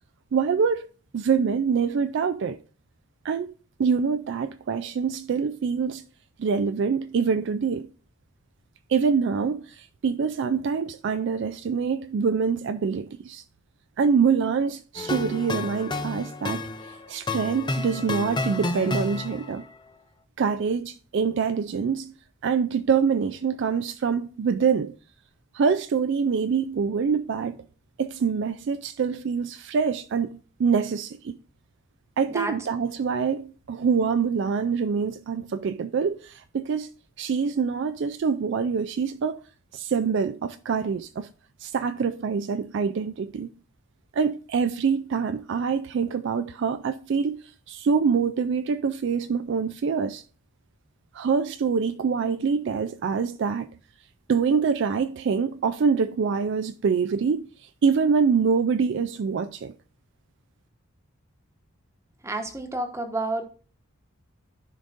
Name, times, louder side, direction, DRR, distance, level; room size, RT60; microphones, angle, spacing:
voice 1, 0.3-0.9 1.1-2.6 3.2-3.5 3.8-6.1 6.4-7.9 8.9-13.4 14.0-16.6 17.1-19.6 20.4-22.1 22.4-25.0 25.5-27.6 28.0-31.4 32.2-36.9 37.2-39.4 39.7-41.3 41.6-43.5 44.1-47.3 47.7-50.2 51.1-53.7 54.3-57.5 57.8-59.7, right 6 dB, 55° right, 0.3 m, -25 dB
sound 1, 14.9-19.6, left 2 dB, 20° left, 0.5 m, -31 dB
voice 2, 62.2-63.4, right 2 dB, 15° right, 1.1 m, -29 dB
14.5 x 5.1 x 2.6 m
head